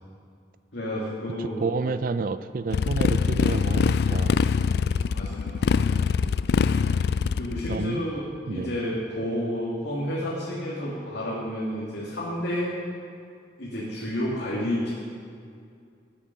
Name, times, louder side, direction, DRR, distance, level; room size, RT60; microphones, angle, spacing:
voice 1, 0.7-1.7 5.1-5.6 7.3-12.7 13.6-14.9, equal, 80° left, -7 dB, 2.1 m, -30 dB
voice 2, 1.4-4.4 7.7-8.1 8.5-8.8, right 4 dB, 50° right, 12 dB, 0.4 m, -29 dB
Motorcycle, 2.7-7.8, left 5 dB, 60° left, 0.3 m, -23 dB
14.0 x 8.6 x 5.8 m, 2.4 s
head